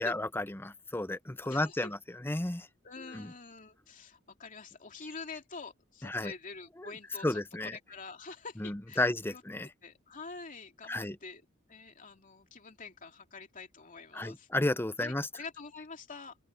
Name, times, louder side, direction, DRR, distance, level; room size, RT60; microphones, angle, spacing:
voice 1, 0.0-2.7 3.0-3.3 6.0-6.3 6.8-6.9 7.2-7.8 8.6-9.7 10.9-11.2 14.1-15.3, left 1 dB, 10° left, 0.7 m, -33 dB
voice 2, 1.4-1.9 2.8-9.4 9.8-11.4 11.7-14.5 15.0-16.4, left 4 dB, 40° left, 2.8 m, -46 dB
open air
head